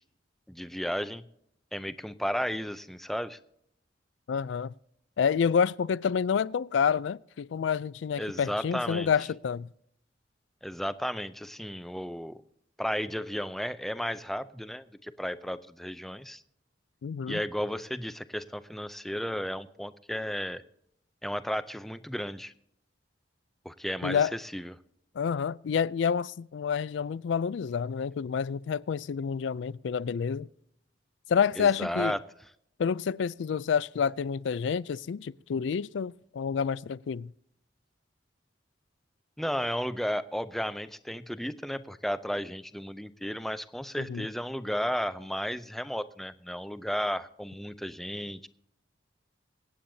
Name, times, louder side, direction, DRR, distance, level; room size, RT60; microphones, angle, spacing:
voice 1, 0.5-1.2 1.7-3.4 8.2-9.1 10.6-12.4 12.8-16.4 17.3-20.6 21.2-22.5 23.6-24.7 31.6-32.2 39.4-48.5, equal, ahead, 0.4 m, -34 dB
voice 2, 4.3-4.7 5.2-9.7 17.0-17.4 24.0-24.3 25.2-30.5 31.3-32.1 32.8-37.3 44.1-44.3, left 6 dB, 75° left, 0.4 m, -28 dB
25.0 x 8.7 x 2.7 m
head